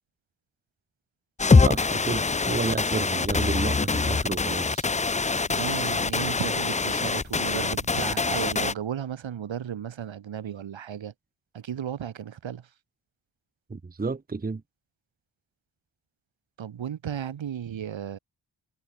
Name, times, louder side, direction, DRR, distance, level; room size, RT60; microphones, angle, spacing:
sound 1, 1.4-8.7, left 4 dB, 15° left, 0.5 m, -24 dB
voice 1, 1.6-4.9 13.7-14.6, right 4 dB, 20° right, 1.0 m, -31 dB
voice 2, 5.5-11.1 11.5-12.7 16.6-18.2, right 9 dB, 70° right, 2.2 m, -34 dB
wide cardioid pair, 110°, 47 cm